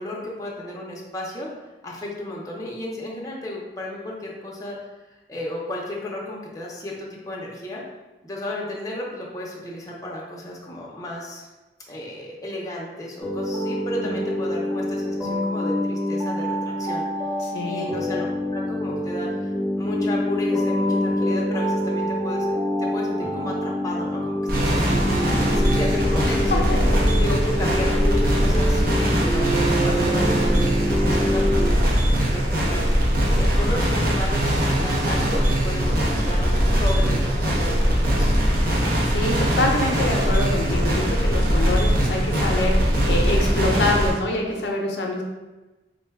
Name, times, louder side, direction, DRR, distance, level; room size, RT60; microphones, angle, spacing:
voice 1, 0.0-1.5 1.8-4.8 5.3-7.8 8.2-11.5 11.9-17.1 17.6-26.6 27.2-32.8 33.3-38.4, left 1 dB, 20° left, -3 dB, 0.5 m, -33 dB
sound 1, 13.2-31.7, equal, 5° right, 0.9 m, -26 dB
voice 2, 17.4-17.9 26.3-27.0 38.8-45.2, left 2 dB, 70° left, 1 dB, 0.5 m, -26 dB
sound 2, 24.5-44.1, equal, 55° right, 0.7 m, -21 dB
3.7 x 2.1 x 3.4 m, 1.1 s
head